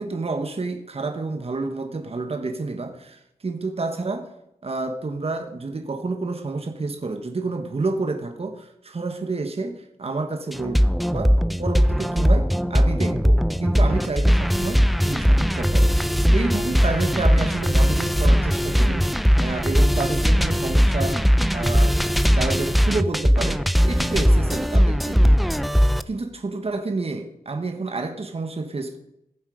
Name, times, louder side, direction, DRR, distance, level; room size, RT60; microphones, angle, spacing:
voice 1, 0.0-4.3 4.6-10.8 11.1-21.2 21.5-22.0 22.3-25.4 25.7-29.0, right 3 dB, 45° right, 5 dB, 1.1 m, -29 dB
sound 1, 10.5-26.0, equal, ahead, 0.4 m, -19 dB
15.5 x 7.3 x 5.0 m, 0.82 s
wide cardioid pair, 105°, 15 cm